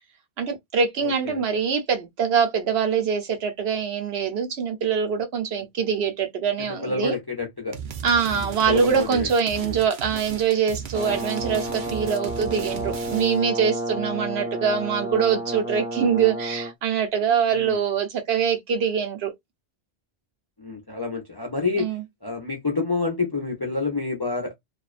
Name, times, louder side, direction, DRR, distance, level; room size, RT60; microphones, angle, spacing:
voice 1, 0.4-7.2 8.0-19.3 21.8-22.0, right 7 dB, 75° right, 1.0 m, -24 dB
voice 2, 1.0-1.4 6.6-7.8 8.3-9.3 9.6-9.8 17.5-17.8 20.6-21.9 22.2-24.5, left 4 dB, 30° left, 0.4 m, -28 dB
sound 1, 7.7-13.5, right 7 dB, 55° right, 0.6 m, -36 dB
Brass instrument, 10.9-16.7, right 1 dB, 15° left, 0.9 m, -31 dB
2.4 x 2.2 x 2.3 m
omnidirectional pair, 1.1 m